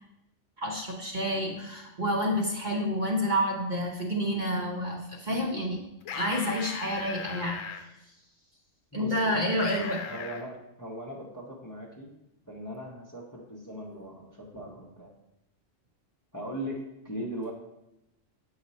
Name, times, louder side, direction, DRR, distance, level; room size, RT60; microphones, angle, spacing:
voice 1, 0.6-5.8 6.1-7.6 8.9-10.0, equal, 40° right, -1 dB, 1.0 m, -29 dB
sound 1, 6.0-7.8 9.6-10.4, left 6 dB, 80° left, 1.0 m, -38 dB
voice 2, 8.9-9.5 10.1-12.1 12.4-15.1 16.3-17.5, equal, 15° left, -2 dB, 0.8 m, -39 dB
7.6 x 4.8 x 4.1 m, 0.89 s
omnidirectional pair, 1.3 m